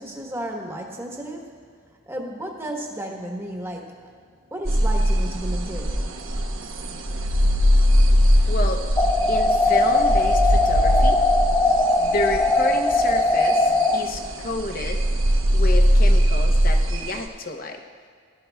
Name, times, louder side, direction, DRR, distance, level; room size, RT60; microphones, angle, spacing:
voice 1, 0.0-1.6 2.1-4.1 4.5-6.2, right 1 dB, 10° right, 0 dB, 1.1 m, -33 dB
sound 1, 4.6-17.2, equal, 75° right, 0.9 m, -21 dB
voice 2, 8.5-8.8 9.3-11.2 12.0-15.0 15.5-17.8, left 2 dB, 45° left, 4 dB, 0.8 m, -30 dB
sound 2, 9.0-14.0, left 2 dB, 15° left, 0.4 m, -20 dB
18.0 x 12.0 x 2.3 m, 2.1 s
head